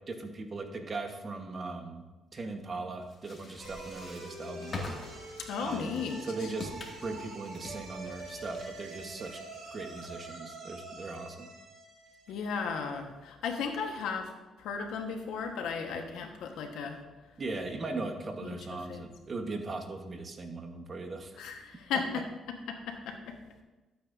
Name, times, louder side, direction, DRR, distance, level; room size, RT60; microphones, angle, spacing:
voice 1, 0.1-2.0 2.3-6.0 6.3-9.4 9.7-11.5 17.4-21.4 21.9-22.0, right 3 dB, 40° right, 5 dB, 1.3 m, -39 dB
sound 1, 3.0-10.3, left 2 dB, 40° left, 2.2 m, -46 dB
sound 2, 3.6-12.8, right 3 dB, 85° right, 2.2 m, -46 dB
voice 2, 5.4-6.2 12.3-14.3 14.6-17.0 18.4-18.6 18.9-19.1 21.4-23.3, left 5 dB, 85° left, 3 dB, 1.4 m, -35 dB
12.5 x 8.5 x 2.7 m, 1.2 s
cardioid pair, 90°, 0 cm